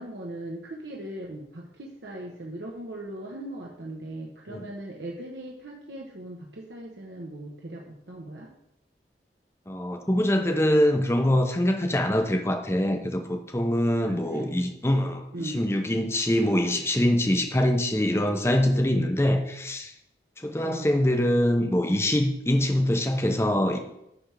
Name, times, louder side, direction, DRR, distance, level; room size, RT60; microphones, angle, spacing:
voice 1, 0.0-8.5 14.1-14.5 15.3-15.6 20.6-21.0, right 1 dB, 80° right, -2 dB, 1.1 m, -39 dB
voice 2, 9.7-19.9 20.4-23.8, left 1 dB, 15° left, 5 dB, 0.7 m, -24 dB
9.9 x 3.5 x 6.0 m, 0.80 s
head